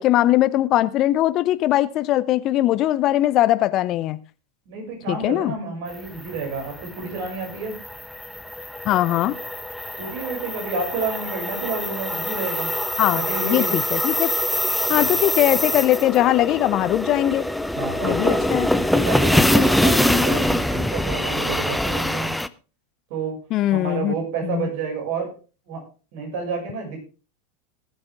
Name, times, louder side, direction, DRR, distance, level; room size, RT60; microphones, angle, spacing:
voice 1, 0.0-4.2 5.1-5.5 8.8-9.4 13.0-14.3 14.9-17.5 18.0-18.7 23.5-24.1 24.4-24.7, left 14 dB, 40° left, 16 dB, 0.7 m, -20 dB
voice 2, 4.7-7.8 10.0-12.7 13.2-13.8 14.9-15.1 17.7-18.4 18.8-22.3 23.1-23.4 23.7-25.3 25.7-25.8 26.1-27.0, right 4 dB, 55° right, 0 dB, 6.5 m, -30 dB
sound 1, 6.0-22.5, left 1 dB, 5° left, 0.7 m, -24 dB
19.5 x 7.9 x 3.6 m, 0.34 s
figure-of-eight pair, 85°, 0 cm